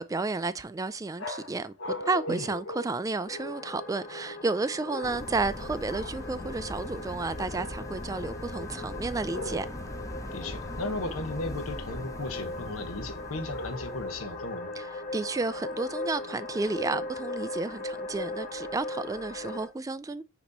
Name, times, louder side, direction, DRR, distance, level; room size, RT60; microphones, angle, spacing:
voice 1, 0.0-1.7 2.1-9.7 14.8-20.2, right 3 dB, 15° right, 0.3 m, -32 dB
sound 1, 1.2-3.7 4.9-5.5 5.9-6.3 9.3-10.0 13.5-14.2, left 2 dB, 65° left, 1.4 m, -40 dB
sound 2, 3.3-19.7, left 2 dB, 35° left, 2.2 m, -39 dB
sound 3, 5.0-14.6, equal, 15° left, 0.8 m, -41 dB
voice 2, 10.3-14.7, left 2 dB, 80° left, 1.1 m, -36 dB
5.9 x 3.0 x 5.4 m
head